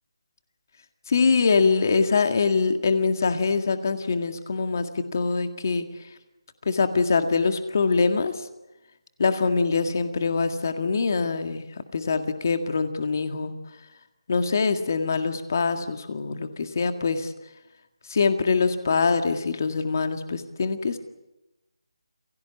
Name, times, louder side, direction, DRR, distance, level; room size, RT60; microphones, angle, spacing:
voice 1, 1.1-5.9 6.7-8.5 9.2-13.5 14.3-17.3 18.1-21.0, left 4 dB, 35° left, 7 dB, 1.9 m, -24 dB
28.5 x 17.0 x 8.7 m, 1.0 s
figure-of-eight pair, 175°, 3 cm